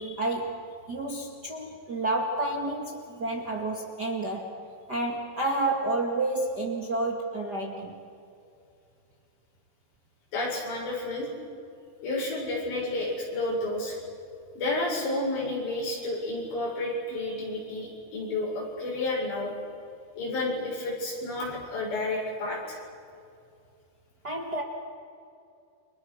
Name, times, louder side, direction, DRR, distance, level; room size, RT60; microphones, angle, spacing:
voice 1, 0.0-4.6 4.9-8.0 24.2-24.6, right 2 dB, 35° right, 0 dB, 1.7 m, -30 dB
voice 2, 10.3-11.3 12.0-14.0 14.6-19.5 20.2-22.8, left 2 dB, 85° left, -3 dB, 9.5 m, -31 dB
29.5 x 26.0 x 6.4 m, 2.5 s
omnidirectional pair, 4.8 m